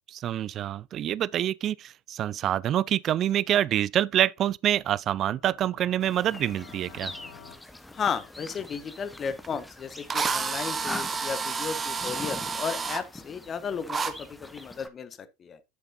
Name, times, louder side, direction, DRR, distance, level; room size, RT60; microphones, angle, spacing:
voice 1, 0.1-7.1, right 11 dB, 40° right, 0.4 m, -26 dB
sound 1, 5.0-7.5, left 8 dB, 50° left, 3.4 m, -51 dB
sound 2, 6.0-14.9, left 1 dB, 5° left, 1.2 m, -43 dB
voice 2, 7.9-15.6, left 6 dB, 30° left, 1.2 m, -34 dB
Drill, 9.4-9.5 10.1-13.0 13.9-14.1, right 5 dB, 25° right, 1.1 m, -30 dB
11.0 x 6.8 x 2.7 m
hypercardioid pair, 80°, 0 cm